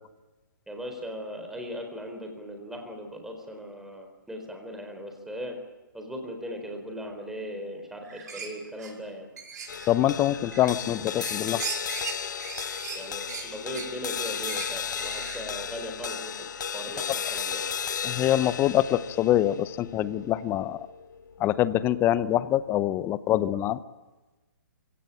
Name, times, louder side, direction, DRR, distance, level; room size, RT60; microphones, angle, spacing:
voice 1, 0.7-5.6 5.9-9.3 13.0-16.5 16.7-17.6, equal, 5° right, 3 dB, 4.3 m, -38 dB
sound 1, 8.0-8.5 8.8-8.9 9.4-9.9 10.3-10.9 11.2-15.6, right 6 dB, 55° right, 6.6 m, -38 dB
sound 2, 9.7-22.2, left 8 dB, 60° left, 0.9 m, -35 dB
voice 2, 9.9-11.6 18.0-20.8 21.4-23.8, left 13 dB, 20° left, 17 dB, 0.8 m, -24 dB
25.0 x 17.5 x 9.1 m, 1.2 s
figure-of-eight pair, 135°, 11 cm